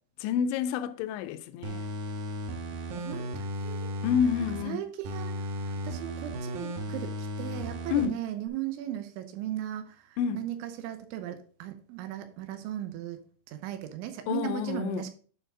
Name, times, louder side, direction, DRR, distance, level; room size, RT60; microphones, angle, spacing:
voice 1, 0.2-1.9 4.0-4.8 7.9-8.2 10.2-10.5 14.3-15.1, left 9 dB, 85° left, 2.7 m, -29 dB
sound 1, 1.6-4.6 5.0-8.1 8.5-8.6, equal, 70° right, 2.3 m, -35 dB
voice 2, 3.0-3.3 3.6-3.9 4.6-13.2 13.5-15.1, right 11 dB, 90° right, 3.3 m, -37 dB
11.5 x 4.8 x 3.6 m
omnidirectional pair, 5.2 m